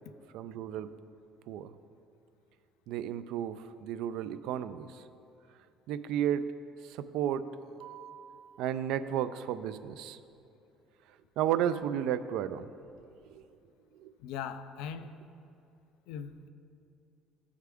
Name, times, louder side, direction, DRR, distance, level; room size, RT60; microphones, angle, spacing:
voice 1, 0.3-0.9 1.5-1.7 2.9-5.0 5.9-6.5 6.8-10.2 11.4-12.7 13.3-13.4 14.0-14.1, right 10 dB, 70° right, 12 dB, 0.3 m, -33 dB
voice 2, 14.2-15.1 16.1-16.5, left 7 dB, 80° left, 10 dB, 0.4 m, -40 dB
13.5 x 4.7 x 3.5 m, 2.6 s
cardioid pair, 135°, 0 cm